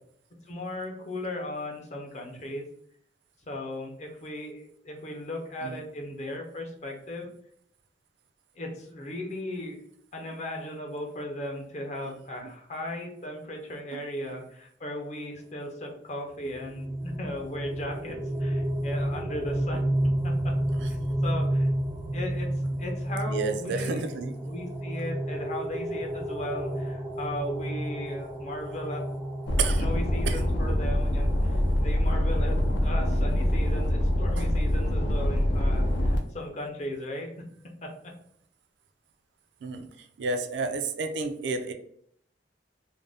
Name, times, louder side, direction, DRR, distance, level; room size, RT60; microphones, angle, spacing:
voice 1, 0.5-2.7 3.5-7.3 8.5-9.8 10.1-19.8 20.2-20.5 20.8-21.7 22.1-22.5 22.8-24.1 24.4-29.1 29.8-37.3 37.8-38.1, left 1 dB, 40° left, 2 dB, 0.5 m, -37 dB
voice 2, 13.9-14.4 20.8-20.9 23.3-24.3 29.6-29.9 30.3-30.4 34.4-34.5 39.6-39.9 40.2-41.7, right 3 dB, 75° right, 7 dB, 0.4 m, -31 dB
sound 1, 16.3-31.1, right 1 dB, 15° right, 0.4 m, -31 dB
sound 2, 29.5-36.2, left 1 dB, 85° left, 0.6 m, -25 dB
2.5 x 2.1 x 3.3 m, 0.67 s
head